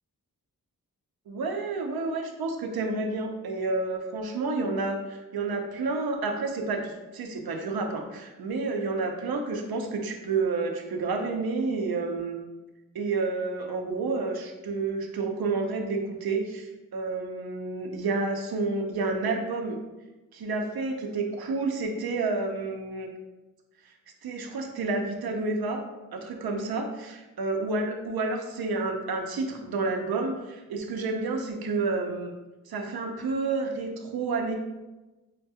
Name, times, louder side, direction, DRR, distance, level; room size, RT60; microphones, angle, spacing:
voice 1, 1.3-12.4 12.9-19.8 20.3-23.1 24.2-25.8 26.1-32.3 32.7-34.6, right 3 dB, 90° right, 3 dB, 0.6 m, -30 dB
5.7 x 2.3 x 2.7 m, 1.1 s
wide cardioid pair, 135°, 36 cm